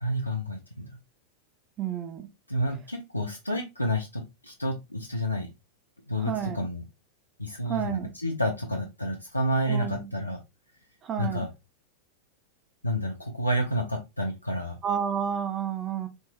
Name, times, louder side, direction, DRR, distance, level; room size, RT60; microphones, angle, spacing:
voice 1, 0.0-0.9 2.5-5.5 6.1-6.8 7.4-10.4 11.2-11.5 12.8-14.8, equal, 85° left, 0.5 m, -29 dB
voice 2, 1.8-2.3 6.2-6.7 7.6-8.1 9.7-10.1 11.0-11.5 14.8-16.1, right 8 dB, 25° right, 0.5 m, -30 dB
3.6 x 3.0 x 2.5 m
figure-of-eight pair, 90°, 0 cm